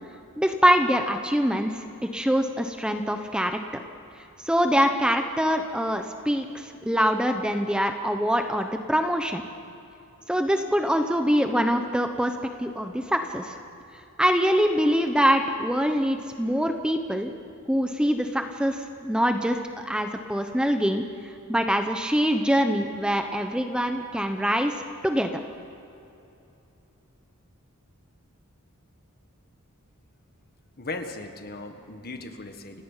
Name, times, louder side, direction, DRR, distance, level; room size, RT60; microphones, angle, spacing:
voice 1, 0.4-1.9 2.1-3.6 4.4-9.4 10.3-12.3 12.6-13.6 14.2-17.3 17.7-21.0 21.5-24.7 25.0-25.3, equal, 5° right, 6 dB, 0.8 m, -24 dB
voice 2, 30.8-32.8, left 2 dB, 45° left, 6 dB, 1.7 m, -37 dB
29.5 x 17.0 x 5.7 m, 2.8 s
head